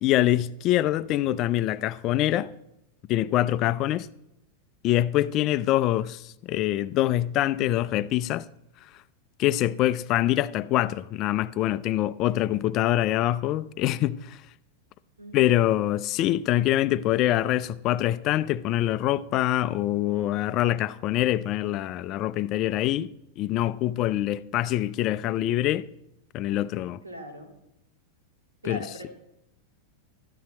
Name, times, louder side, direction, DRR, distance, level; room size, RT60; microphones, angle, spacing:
voice 1, 0.0-2.5 3.1-4.1 4.8-8.5 9.4-14.4 15.3-25.9 26.3-27.0 28.6-28.8, left 13 dB, 35° left, 0.4 m, -25 dB
voice 2, 15.2-15.7 27.0-27.5 28.6-29.1, equal, 80° right, 2.5 m, -40 dB
13.0 x 11.0 x 4.1 m
figure-of-eight pair, 90°, 0 cm